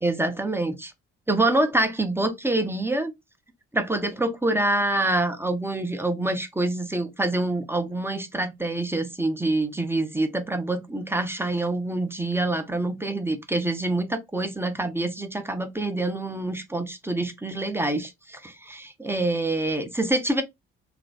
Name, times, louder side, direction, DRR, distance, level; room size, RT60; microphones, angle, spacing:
voice 1, 0.0-0.9 1.3-3.1 3.7-20.4, right 2 dB, 5° right, 0.6 m, -26 dB
3.1 x 2.5 x 2.2 m
hypercardioid pair, 45°, 36 cm